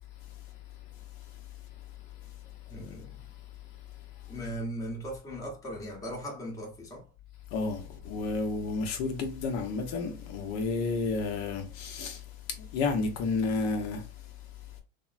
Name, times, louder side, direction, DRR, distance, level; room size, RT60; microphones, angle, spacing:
voice 1, 2.7-3.2 4.3-7.0, right 1 dB, 10° left, 0.8 m, -38 dB
voice 2, 7.5-12.2 12.7-14.0, left 4 dB, 55° left, 0.6 m, -31 dB
3.6 x 2.0 x 2.4 m
supercardioid pair, 145°, 41 cm